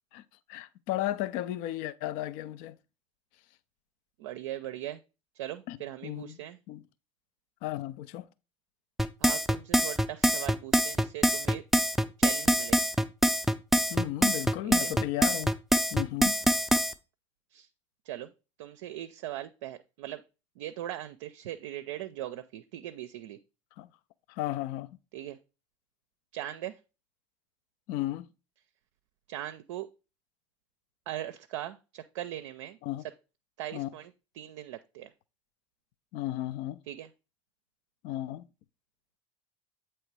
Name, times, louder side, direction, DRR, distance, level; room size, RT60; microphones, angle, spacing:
voice 1, 0.5-2.8 5.7-5.8 6.0-6.8 7.6-8.3 13.9-15.5 15.9-16.3 23.8-23.9 24.3-24.9 27.9-28.3 32.8-33.0 33.7-33.9 36.1-36.8 38.0-38.5, left 14 dB, 60° left, 0.5 m, -34 dB
voice 2, 4.2-5.0 5.4-6.6 9.2-11.6 12.2-12.8 14.6-14.9 17.5-17.7 18.1-18.3 18.6-20.2 20.6-23.4 25.1-25.4 26.3-26.8 29.3-29.9 31.1-32.8 33.6-35.1 36.9-37.1, right 13 dB, 70° right, 0.4 m, -40 dB
sound 1, 9.0-16.9, equal, ahead, 0.5 m, -24 dB
7.9 x 3.1 x 4.6 m
hypercardioid pair, 70°, 16 cm